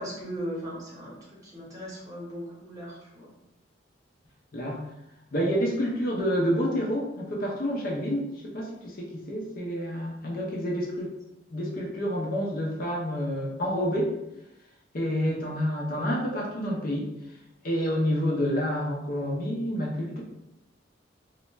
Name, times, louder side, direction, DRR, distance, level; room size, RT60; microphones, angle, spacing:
voice 1, 0.0-3.3, equal, 20° right, -6 dB, 0.9 m, -38 dB
voice 2, 4.5-4.8 5.3-11.1 11.5-14.1 14.9-17.1 17.6-20.2, equal, 50° left, -1 dB, 0.5 m, -28 dB
2.4 x 2.1 x 3.0 m, 0.86 s
head